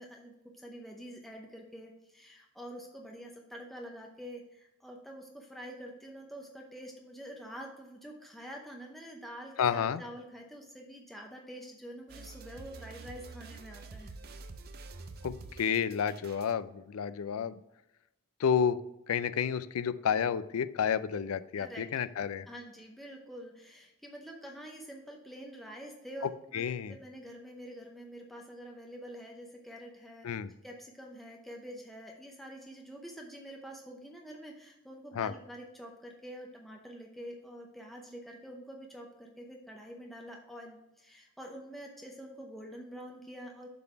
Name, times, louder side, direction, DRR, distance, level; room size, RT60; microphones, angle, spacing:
voice 1, 0.0-14.1 21.6-21.9 22.5-26.6 26.9-30.4 30.6-43.7, equal, ahead, 0 dB, 0.6 m, -47 dB
voice 2, 9.6-10.0 15.2-17.6 18.4-18.8 19.1-22.5 26.5-27.0 30.2-30.5 35.1-35.3, left 7 dB, 80° left, 14 dB, 0.4 m, -30 dB
sound 1, 12.1-16.5, right 3 dB, 45° right, 0.5 m, -47 dB
7.3 x 3.9 x 5.8 m, 0.91 s
head